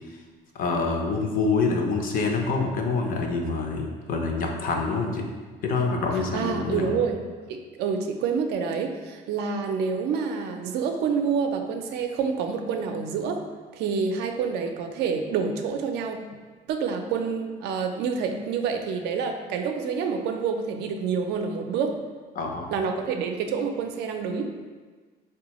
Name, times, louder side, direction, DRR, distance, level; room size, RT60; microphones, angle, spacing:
voice 1, 0.5-5.3 5.6-7.0 22.4-22.7, left 4 dB, 55° left, 2 dB, 0.5 m, -26 dB
voice 2, 6.3-7.2 7.5-13.4 13.7-16.2 16.7-22.0 22.7-24.5, right 6 dB, 75° right, 5 dB, 0.4 m, -27 dB
3.8 x 2.2 x 2.9 m, 1.4 s
cardioid pair, 110°, 17 cm